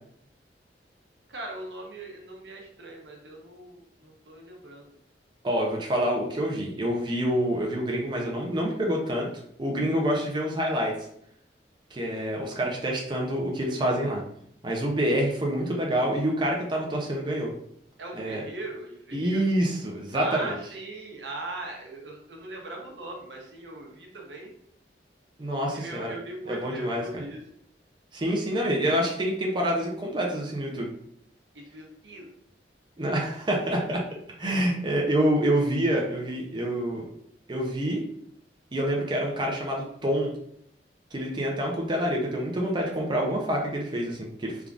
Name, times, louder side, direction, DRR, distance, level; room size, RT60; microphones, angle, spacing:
voice 1, 1.3-4.9 18.0-19.5 20.1-24.5 25.7-27.4 31.5-32.3, right 2 dB, 80° right, 1 dB, 0.9 m, -39 dB
voice 2, 5.4-9.3 9.6-10.9 11.9-14.2 14.6-17.5 18.1-18.4 19.1-20.5 25.4-26.1 26.5-27.2 28.1-30.9 33.0-34.0 34.4-37.1 37.5-38.0 38.7-40.3 41.1-44.7, right 1 dB, 25° right, -1 dB, 0.6 m, -27 dB
3.6 x 3.5 x 2.4 m, 0.69 s
head